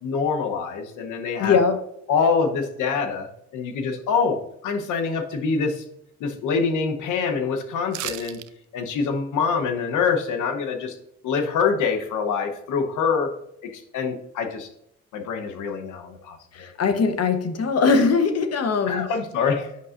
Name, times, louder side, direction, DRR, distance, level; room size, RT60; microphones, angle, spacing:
voice 1, 0.0-1.6 2.1-5.8 6.2-8.4 8.7-10.9 11.2-13.3 13.6-14.7 15.1-16.7 18.9-19.8, left 5 dB, 80° left, 6 dB, 1.0 m, -25 dB
voice 2, 1.4-1.8 16.5-19.1, left 5 dB, 55° left, 8 dB, 1.0 m, -21 dB
sound 1, 7.9-8.5 8.8-8.9, right 14 dB, 75° right, 0.5 m, -33 dB
8.4 x 5.5 x 2.5 m, 0.76 s
cardioid pair, 90°, 30 cm